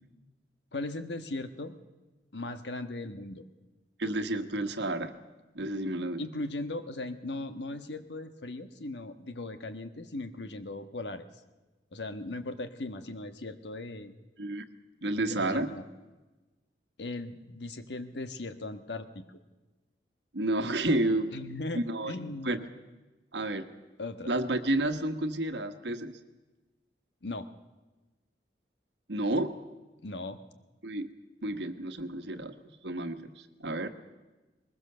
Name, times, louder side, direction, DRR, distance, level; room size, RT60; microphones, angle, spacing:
voice 1, 0.7-1.7 2.3-3.4 6.2-11.2 11.9-14.1 15.3-15.8 17.0-19.4 21.3-22.6 24.0-24.3 27.2-27.5 30.0-30.4, left 2 dB, 75° left, 9 dB, 1.4 m, -38 dB
voice 2, 4.0-5.1 5.5-6.2 14.4-14.6 15.0-15.7 20.3-21.3 21.7-22.1 22.4-22.6 23.3-23.7 24.2-26.2 29.1-29.5 30.8-31.1 31.4-32.5 32.8-33.9, right 1 dB, 75° right, 9 dB, 1.4 m, -30 dB
21.0 x 21.0 x 6.8 m, 1.2 s
head